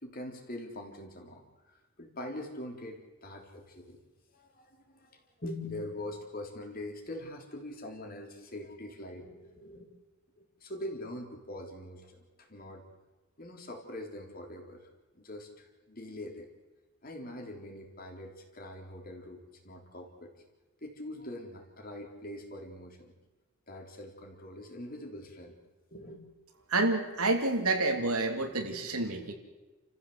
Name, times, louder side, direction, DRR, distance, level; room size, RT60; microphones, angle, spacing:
voice 1, 0.0-4.0 4.3-9.9 10.3-12.8 13.4-14.8 15.1-16.5 17.0-20.3 20.8-23.1 23.7-25.6 25.9-26.3, left 1 dB, 40° left, 2 dB, 3.7 m, -43 dB
voice 2, 26.7-29.3, right 2 dB, 85° right, 4 dB, 3.0 m, -28 dB
29.5 x 15.0 x 8.0 m, 1.2 s
head